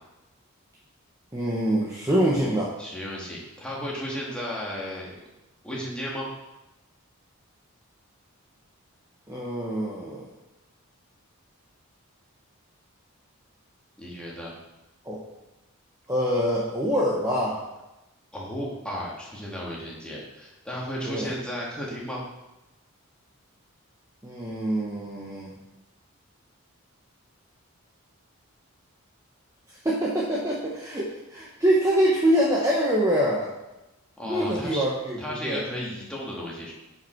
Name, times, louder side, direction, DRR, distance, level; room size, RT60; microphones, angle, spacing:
voice 1, 1.3-2.7 9.3-10.3 15.0-15.2 16.1-17.6 21.0-21.3 24.2-25.5 29.7-33.5 34.2-35.6, equal, 15° right, -5 dB, 0.9 m, -25 dB
voice 2, 2.8-5.1 5.6-6.3 14.0-14.5 18.3-22.2 34.2-34.8 35.2-36.7, equal, 5° left, -5 dB, 1.8 m, -34 dB
10.0 x 5.3 x 4.5 m, 0.98 s
head